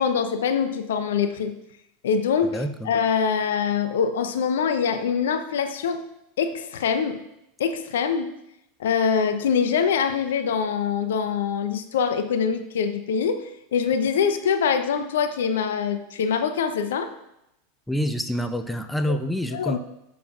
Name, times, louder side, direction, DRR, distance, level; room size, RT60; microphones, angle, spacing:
voice 1, 0.0-1.5 2.0-6.0 6.4-7.2 7.6-8.3 8.8-17.1 19.1-19.2 19.5-19.8, left 6 dB, 70° left, 10 dB, 0.7 m, -24 dB
voice 2, 2.5-2.9 17.9-19.8, equal, 5° left, 8 dB, 0.7 m, -27 dB
15.0 x 7.1 x 2.4 m, 0.85 s
figure-of-eight pair, 85°, 0 cm